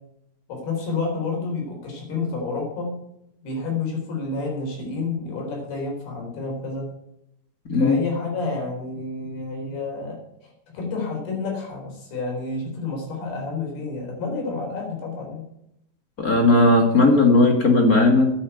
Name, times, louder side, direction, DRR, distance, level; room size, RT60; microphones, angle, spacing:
voice 1, 0.5-2.9 3.4-6.9 7.8-15.4, left 3 dB, 75° left, -1 dB, 6.1 m, -29 dB
voice 2, 16.2-18.3, left 2 dB, 40° left, 3 dB, 1.2 m, -16 dB
9.9 x 9.1 x 9.1 m, 0.80 s
omnidirectional pair, 4.5 m